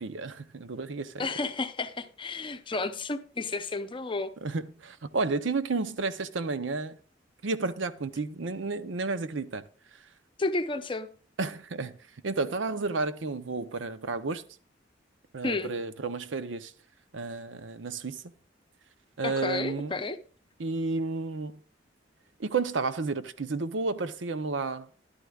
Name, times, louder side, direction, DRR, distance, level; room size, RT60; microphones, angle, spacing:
voice 1, 0.0-1.3 4.4-7.0 7.4-9.6 11.4-12.0 12.2-14.4 15.3-16.7 17.1-18.2 19.2-19.9 20.6-21.5 22.4-24.9, right 3 dB, 85° right, 0.7 m, -31 dB
voice 2, 1.2-4.3 10.4-11.1 15.4-15.7 19.2-20.2, left 3 dB, 25° left, 0.7 m, -32 dB
12.5 x 11.0 x 2.4 m
head